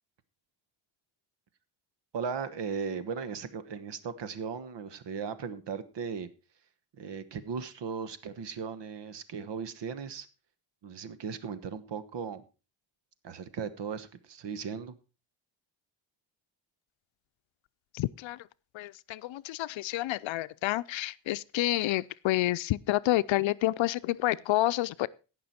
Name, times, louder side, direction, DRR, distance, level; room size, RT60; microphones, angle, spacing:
voice 1, 2.1-6.3 6.9-10.3 10.8-12.4 13.2-14.9, right 6 dB, 60° right, 1.3 m, -37 dB
voice 2, 17.9-18.5 18.7-25.1, left 16 dB, 70° left, 0.6 m, -29 dB
17.5 x 6.1 x 4.3 m
cardioid pair, 100°, 48 cm